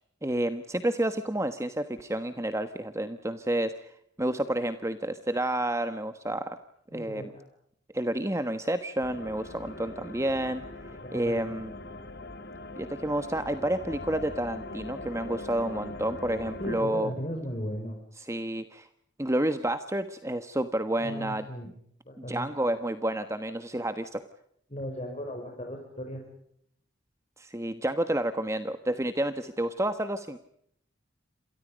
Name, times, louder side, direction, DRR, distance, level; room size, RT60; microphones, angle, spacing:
voice 1, 0.2-3.9 4.2-6.6 6.9-7.2 7.9-10.6 11.1-11.7 12.8-17.1 18.3-18.9 19.2-21.4 22.2-24.2 27.4-30.4, right 1 dB, 15° right, 9 dB, 1.3 m, -30 dB
voice 2, 6.9-7.4 11.0-11.5 16.6-18.0 21.0-21.8 22.0-22.5 22.7-22.8 24.7-26.2, equal, 35° left, 2 dB, 5.8 m, -36 dB
sound 1, 9.0-16.8, left 2 dB, 60° left, 2.8 m, -41 dB
29.0 x 27.5 x 5.2 m, 0.70 s
head